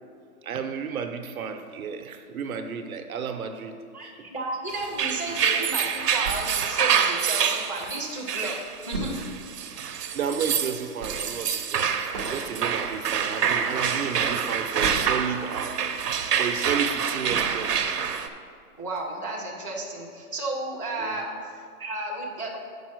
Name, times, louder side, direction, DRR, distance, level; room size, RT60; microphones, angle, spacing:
voice 1, 0.4-4.3 10.0-15.8 16.4-17.9 21.0-21.2, right 6 dB, 65° right, 6 dB, 0.9 m, -32 dB
voice 2, 3.9-8.6 8.9-9.2 9.6-10.1 18.8-22.6, right 2 dB, 20° left, -6 dB, 0.4 m, -33 dB
sound 1, 4.8-18.3, right 7 dB, 90° right, 0.8 m, -26 dB
sound 2, 6.3-7.8 8.2-8.3 8.5-15.5 15.9-18.0 18.5-18.6 19.0-19.1, right 3 dB, 20° right, 0.6 m, -39 dB
7.1 x 5.4 x 6.0 m, 2.1 s
hypercardioid pair, 165°, 46 cm